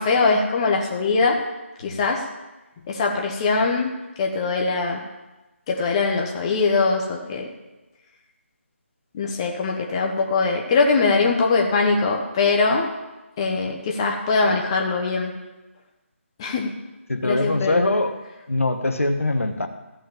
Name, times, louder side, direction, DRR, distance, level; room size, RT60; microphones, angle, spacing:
voice 1, 0.0-1.4 1.8-2.2 2.9-3.9 4.2-5.0 5.7-7.5 9.1-12.9 13.4-15.3 16.4-16.7 17.2-17.9, left 4 dB, 20° left, 1 dB, 1.1 m, -22 dB
voice 2, 17.1-18.1 18.5-19.7, left 2 dB, 75° left, 7 dB, 1.2 m, -22 dB
14.0 x 5.5 x 7.2 m, 1.1 s
figure-of-eight pair, 155°, 7 cm